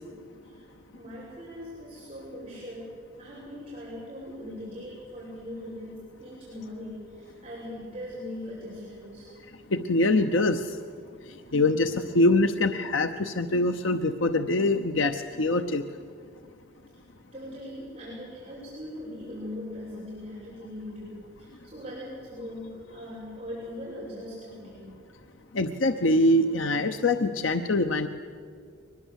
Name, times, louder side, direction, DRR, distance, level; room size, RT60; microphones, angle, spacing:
voice 1, 0.4-2.9 3.2-9.3 11.7-11.9 16.9-17.0 17.3-25.1, left 1 dB, 30° right, -7 dB, 6.6 m, -40 dB
voice 2, 9.7-10.8 11.5-15.8 25.5-28.1, left 2 dB, 90° left, 7 dB, 0.9 m, -24 dB
23.0 x 20.5 x 8.2 m, 2.3 s
head